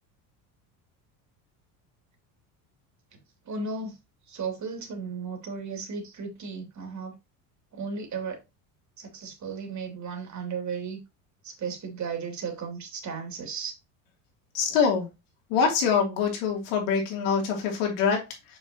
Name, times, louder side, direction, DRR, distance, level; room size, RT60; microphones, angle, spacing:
voice 1, 3.5-3.9 4.3-7.1 7.7-8.4 9.0-11.0 11.4-13.7, right 5 dB, 40° right, 2.8 m, -35 dB
voice 2, 14.5-15.1 15.5-18.6, left 6 dB, 80° left, 3.0 m, -25 dB
6.2 x 6.1 x 2.9 m
supercardioid pair, 100°, 45 cm